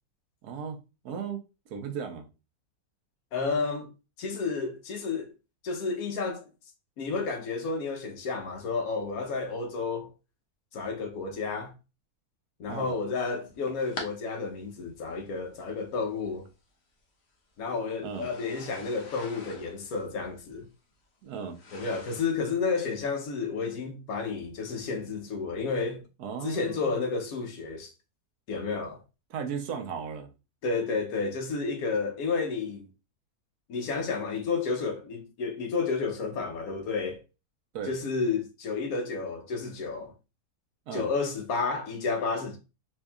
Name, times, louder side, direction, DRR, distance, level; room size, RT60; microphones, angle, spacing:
voice 1, 0.4-0.8 1.0-1.4 1.7-2.3 12.7-12.9 18.0-18.3 21.2-21.6 26.2-27.0 29.3-30.3 37.7-37.9 40.9-41.1, right 6 dB, 85° right, 1.2 m, -36 dB
voice 2, 3.3-3.9 4.2-5.3 5.6-6.5 7.0-10.1 10.7-11.7 12.6-16.5 17.6-20.7 21.7-26.0 26.4-27.9 28.5-29.0 30.6-32.9 33.7-37.2 37.9-40.1 40.9-42.6, left 4 dB, 70° left, 1.2 m, -31 dB
sound 1, 13.4-14.1 15.1-15.2 16.4-16.5 18.1-22.4, left 2 dB, 50° left, 1.0 m, -44 dB
4.5 x 2.7 x 2.3 m
omnidirectional pair, 1.6 m